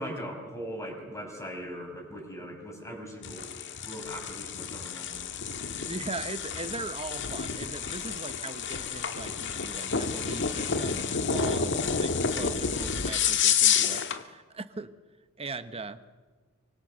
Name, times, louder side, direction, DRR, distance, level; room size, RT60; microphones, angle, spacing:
voice 1, 0.0-3.5 3.8-5.3, equal, 15° left, 1 dB, 6.4 m, -40 dB
sound 1, 3.2-14.2, left 6 dB, 60° left, 1.6 m, -29 dB
voice 2, 5.9-14.9 15.4-16.0, right 3 dB, 30° right, 10 dB, 1.2 m, -39 dB
25.0 x 24.5 x 6.5 m, 1.3 s
head